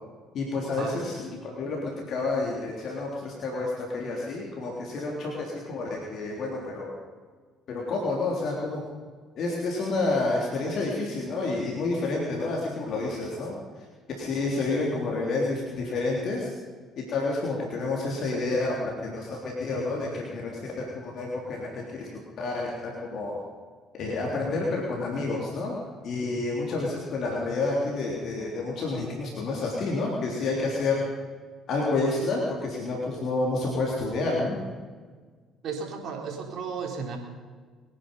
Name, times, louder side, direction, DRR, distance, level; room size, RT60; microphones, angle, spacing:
voice 1, 0.3-1.1 1.6-6.9 7.7-8.8 9.4-13.6 14.2-16.5 17.0-18.7 19.0-20.5 20.8-22.1 22.4-23.4 24.0-25.8 26.0-31.0 31.7-34.5, left 3 dB, 60° left, -2 dB, 3.5 m, -29 dB
voice 2, 35.6-37.2, right 5 dB, 60° right, 1 dB, 4.2 m, -34 dB
24.0 x 10.5 x 5.5 m, 1.5 s
hypercardioid pair, 55°, 0 cm